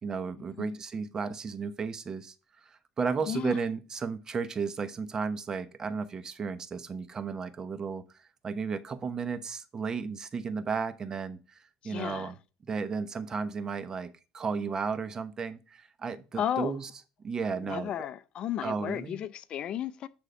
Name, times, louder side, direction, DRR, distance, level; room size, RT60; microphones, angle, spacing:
voice 1, 0.0-2.3 2.6-12.3 12.7-16.9 17.2-17.9 18.6-19.2, right 5 dB, 30° right, 0.9 m, -34 dB
voice 2, 3.3-3.6 11.8-12.3 16.4-16.8 17.6-20.1, left 10 dB, 50° left, 0.5 m, -34 dB
10.0 x 3.8 x 5.1 m
supercardioid pair, 105°, 2 cm